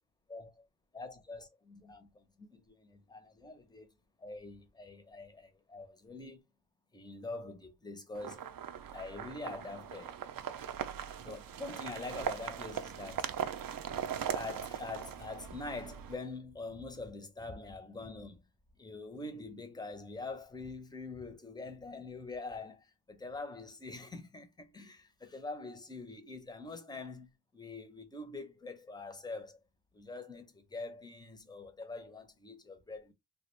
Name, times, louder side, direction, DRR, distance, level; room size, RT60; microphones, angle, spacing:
voice 1, 0.3-0.7 0.9-3.9 4.2-6.4 6.9-8.4 8.9-10.2 11.2-13.3 14.3-18.4 18.8-29.6 29.9-33.1, left 3 dB, 10° left, 0.5 m, -44 dB
sound 1, 8.1-16.1, right 8 dB, 50° right, 0.4 m, -40 dB
3.4 x 2.3 x 3.0 m
wide cardioid pair, 145°, 47 cm